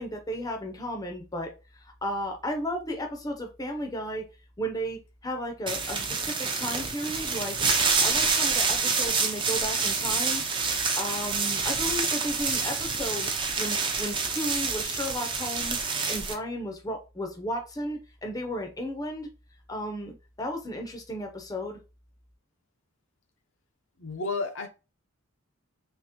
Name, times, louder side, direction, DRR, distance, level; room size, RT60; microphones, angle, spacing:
voice 1, 0.0-4.3 4.6-7.6 8.0-10.4 11.0-13.3 13.6-19.3 19.7-21.8, equal, 15° left, 0.6 m, -34 dB
sound 1, 5.7-16.3, right 4 dB, 25° right, 0.6 m, -27 dB
voice 2, 24.0-24.7, left 3 dB, 65° left, 0.7 m, -31 dB
3.5 x 3.0 x 2.9 m
head